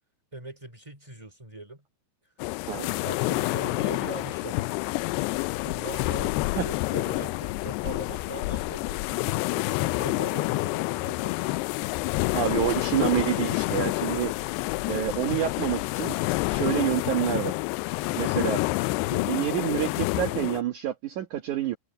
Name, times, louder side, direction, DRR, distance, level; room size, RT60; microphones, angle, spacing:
voice 1, 0.3-1.8 2.7-4.8 5.6-9.0 9.5-11.5 18.0-18.3, right 1 dB, 10° right, 3.5 m, -41 dB
sound 1, 2.4-20.6, left 22 dB, 85° left, 2.6 m, -28 dB
voice 2, 12.3-14.3 14.9-16.1 16.5-17.6 18.2-18.6 19.1-21.8, right 12 dB, 60° right, 2.4 m, -28 dB
omnidirectional pair, 4.7 m